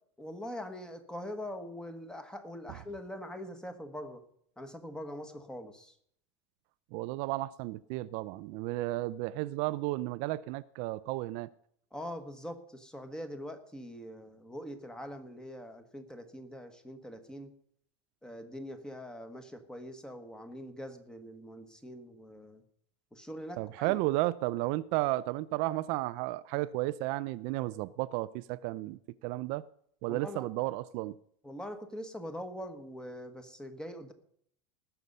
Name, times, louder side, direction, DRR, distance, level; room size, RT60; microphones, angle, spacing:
voice 1, 0.2-4.2 4.6-5.9 11.9-17.5 18.2-22.6 23.1-24.0 30.1-30.5 31.4-34.1, equal, 5° left, 1.3 m, -43 dB
voice 2, 6.9-11.5 23.6-29.6 30.0-31.2, right 18 dB, 45° right, 0.4 m, -33 dB
19.5 x 6.9 x 5.4 m
supercardioid pair, 145°, 16 cm